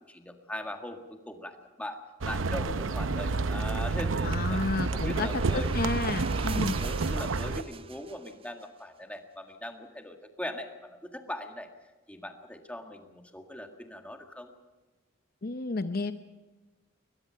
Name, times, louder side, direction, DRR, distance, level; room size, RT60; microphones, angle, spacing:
voice 1, 0.0-2.0 2.2-4.6 4.9-5.8 6.3-11.7 12.1-14.5, left 1 dB, 5° left, 4 dB, 1.8 m, -40 dB
sound 1, 2.2-7.6, right 3 dB, 80° right, 0.7 m, -29 dB
sound 2, 3.5-8.6, right 6 dB, 30° right, 0.6 m, -45 dB
voice 2, 4.2-6.8 15.4-16.1, left 3 dB, 50° left, 9 dB, 0.7 m, -31 dB
21.5 x 21.0 x 5.7 m, 1.2 s
head